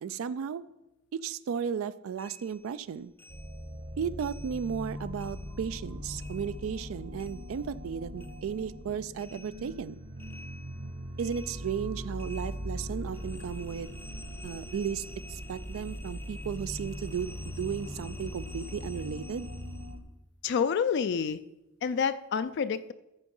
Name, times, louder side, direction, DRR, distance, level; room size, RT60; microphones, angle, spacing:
voice 1, 0.0-0.6 1.1-3.1 4.0-10.0 11.2-14.0 14.4-19.5, right 7 dB, 70° right, 16 dB, 0.3 m, -35 dB
sound 1, 2.2-4.9 5.2-7.9 8.2-20.0, left 2 dB, 10° left, 0.6 m, -52 dB
sound 2, 3.3-20.0, equal, 45° right, 1.0 m, -40 dB
voice 2, 20.4-21.4 21.8-22.9, left 6 dB, 55° left, 12 dB, 0.3 m, -28 dB
13.5 x 4.5 x 5.4 m, 0.94 s
head